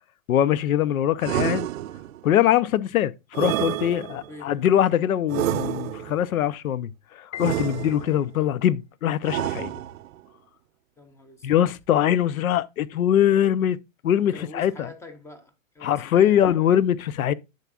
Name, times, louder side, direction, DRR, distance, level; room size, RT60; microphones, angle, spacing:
voice 1, 0.3-1.7 2.2-9.8 11.4-13.8 14.0-14.9 15.8-17.3, left 10 dB, 85° left, 0.7 m, -22 dB
sound 1, 1.2-2.3 3.3-4.4 5.3-6.3 7.4-8.3 9.2-10.2, right 13 dB, 75° right, 0.6 m, -29 dB
voice 2, 4.1-4.6 11.0-11.6 14.3-16.3, left 2 dB, 5° left, 0.5 m, -45 dB
Piano, 7.3-8.6, left 11 dB, 30° left, 1.0 m, -41 dB
10.5 x 6.2 x 2.4 m
hypercardioid pair, 140°, 41 cm